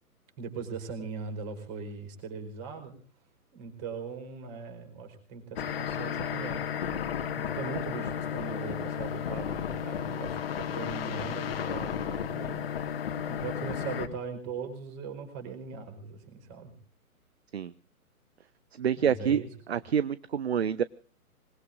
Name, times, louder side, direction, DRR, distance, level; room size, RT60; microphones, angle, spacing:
voice 1, 0.4-3.0 3.5-6.6 7.3-12.7 13.3-16.7 19.0-19.5, right 5 dB, 25° right, 6 dB, 4.8 m, -40 dB
sound 1, 5.6-14.1, left 8 dB, 40° left, 2.0 m, -33 dB
voice 2, 18.8-19.4 19.7-20.8, right 8 dB, 45° right, 18 dB, 0.7 m, -27 dB
26.0 x 20.5 x 2.6 m, 0.42 s
figure-of-eight pair, 130°, 45 cm